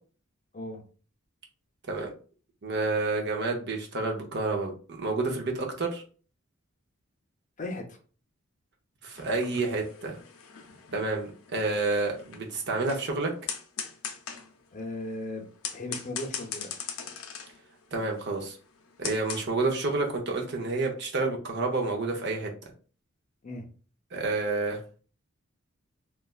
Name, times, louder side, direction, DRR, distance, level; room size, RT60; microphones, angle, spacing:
voice 1, 2.6-6.0 9.0-10.2 10.9-13.3 17.9-18.6 19.0-22.5 24.1-24.8, right 3 dB, 55° right, 1 dB, 0.6 m, -29 dB
voice 2, 7.6-8.0 14.7-15.4 15.7-16.7 23.4-23.6, left 2 dB, 35° left, 3 dB, 0.5 m, -36 dB
sound 1, 9.2-19.4, left 7 dB, 85° left, 0.5 m, -41 dB
3.2 x 2.2 x 2.3 m, 0.39 s
head